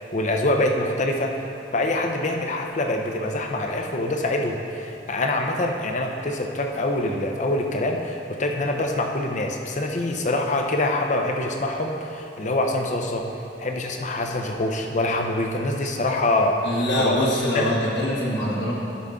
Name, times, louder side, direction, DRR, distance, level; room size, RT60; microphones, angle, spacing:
voice 1, 0.1-1.3 1.7-13.3 13.6-16.6 17.0-17.3 17.5-17.7, left 2 dB, 40° left, 3 dB, 0.7 m, -25 dB
voice 2, 16.6-18.7, left 1 dB, 70° left, -4 dB, 1.6 m, -24 dB
11.5 x 5.7 x 3.7 m, 2.9 s
head